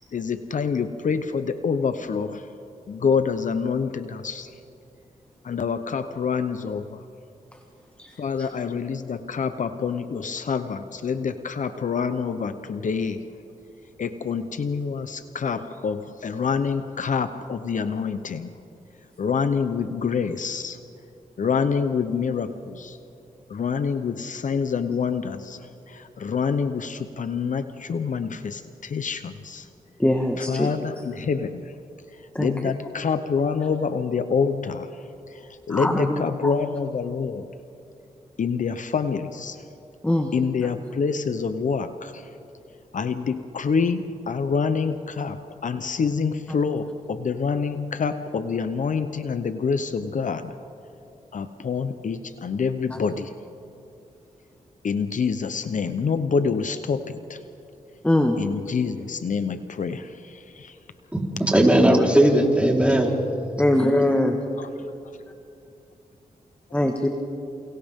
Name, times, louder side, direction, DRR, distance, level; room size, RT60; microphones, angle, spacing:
voice 1, 0.1-2.5 2.9-4.5 5.4-7.0 8.2-13.3 14.0-18.5 19.2-20.8 21.4-23.0 23.5-29.7 30.4-31.7 32.1-37.5 38.4-39.6 40.3-42.3 42.9-50.5 51.3-53.3 54.8-57.4 58.4-60.8 64.6-64.7, left 5 dB, 60° left, 10 dB, 0.9 m, -27 dB
voice 2, 30.0-30.7 32.4-32.5 35.7-36.1 40.0-40.3 58.0-58.4 63.6-64.3 66.7-67.1, left 1 dB, 10° left, 3 dB, 1.6 m, -21 dB
voice 3, 61.1-63.1, right 1 dB, 10° right, -1 dB, 4.2 m, -18 dB
29.0 x 28.5 x 3.7 m, 2.6 s
cardioid pair, 65°, 14 cm